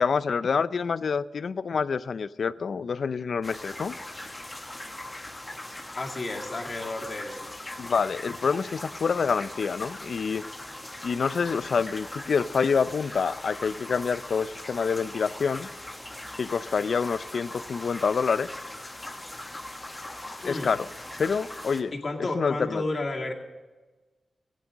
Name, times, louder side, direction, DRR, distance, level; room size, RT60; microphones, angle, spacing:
voice 1, 0.0-4.0 7.8-10.4 11.0-15.7 16.4-18.6 20.4-20.9 21.2-21.9 22.4-22.8, left 5 dB, 70° left, 16 dB, 0.4 m, -27 dB
sound 1, 3.4-21.8, left 1 dB, 20° left, 1.5 m, -40 dB
voice 2, 6.0-7.5 20.4-20.7 21.9-23.3, left 2 dB, 50° left, 0 dB, 2.1 m, -32 dB
17.0 x 8.4 x 6.2 m, 1.3 s
cardioid pair, 80°, 0 cm